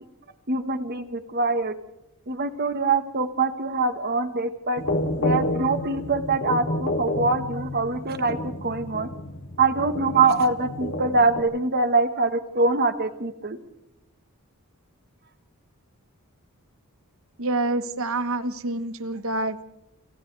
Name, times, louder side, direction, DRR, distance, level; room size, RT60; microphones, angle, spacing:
voice 1, 0.5-1.7 2.3-4.8 5.2-9.1 9.6-13.6, right 3 dB, 45° right, 10 dB, 1.4 m, -24 dB
sound 1, 4.8-11.4, left 1 dB, 70° left, 3.1 m, -30 dB
voice 2, 17.4-19.6, right 2 dB, 65° right, 12 dB, 1.2 m, -27 dB
29.5 x 29.0 x 3.4 m, 0.86 s
head